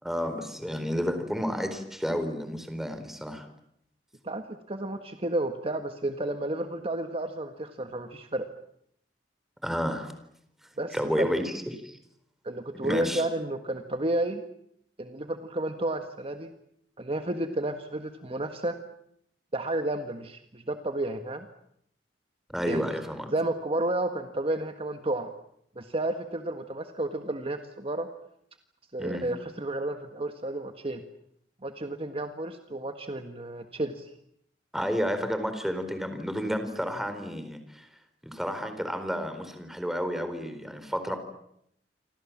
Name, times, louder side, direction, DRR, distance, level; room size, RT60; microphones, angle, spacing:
voice 1, 0.0-3.5 9.6-10.1 10.9-11.5 11.8-12.0 12.8-13.3 22.5-23.3 29.0-29.2 34.7-37.9 38.2-41.2, equal, ahead, 8 dB, 4.2 m, -31 dB
voice 2, 4.2-8.4 10.8-11.4 12.4-14.4 15.0-16.5 17.0-18.8 19.5-21.5 22.7-22.9 23.3-25.3 25.7-28.1 28.9-31.0 31.6-34.1, right 1 dB, 35° right, 7 dB, 1.6 m, -31 dB
28.5 x 25.0 x 7.4 m, 0.73 s
head